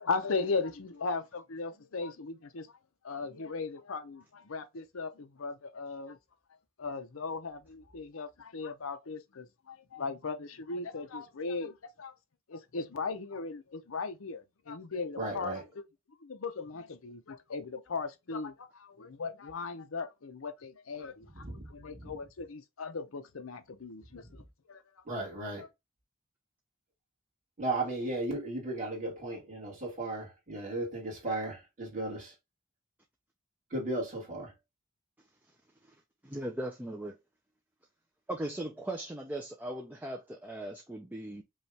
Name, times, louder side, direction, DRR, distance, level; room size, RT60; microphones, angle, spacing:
voice 1, 0.0-2.8 3.0-6.2 6.8-12.1 12.5-15.8 16.2-24.8 25.6-25.7, left 4 dB, 85° left, 0.7 m, -38 dB
voice 2, 15.2-15.6 21.3-22.1 25.1-25.6 27.6-32.3 33.7-34.5, right 2 dB, 35° right, 1.9 m, -35 dB
voice 3, 36.2-37.2 38.3-41.4, right 1 dB, 10° right, 0.5 m, -38 dB
5.3 x 2.4 x 3.3 m
head